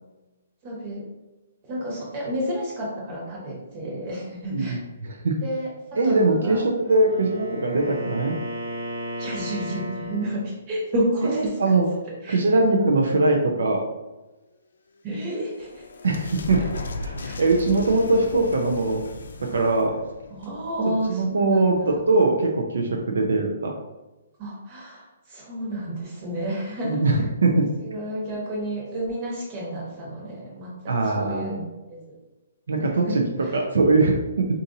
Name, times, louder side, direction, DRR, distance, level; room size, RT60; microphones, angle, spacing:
voice 1, 0.6-1.0 1.7-5.1 5.4-6.6 9.2-11.6 12.2-12.4 15.0-15.8 16.6-16.7 17.2-17.4 18.3-18.5 20.3-22.0 24.4-27.3 27.8-32.2 32.9-33.1 33.4-33.6, right 1 dB, 30° right, -4 dB, 1.1 m, -31 dB
voice 2, 4.5-5.3 6.0-8.3 11.6-11.9 12.3-13.8 16.0-16.6 17.0-19.1 19.5-19.9 21.1-23.7 26.8-27.7 30.9-31.6 32.7-33.2 33.5-34.5, right 2 dB, 80° right, 1 dB, 0.5 m, -21 dB
Wind instrument woodwind instrument, 6.7-10.5, equal, 50° right, 0.9 m, -34 dB
sound 1, 15.0-21.4, left 2 dB, 80° left, 0.4 m, -37 dB
4.0 x 2.5 x 2.6 m, 1.1 s
hypercardioid pair, 165°, 0 cm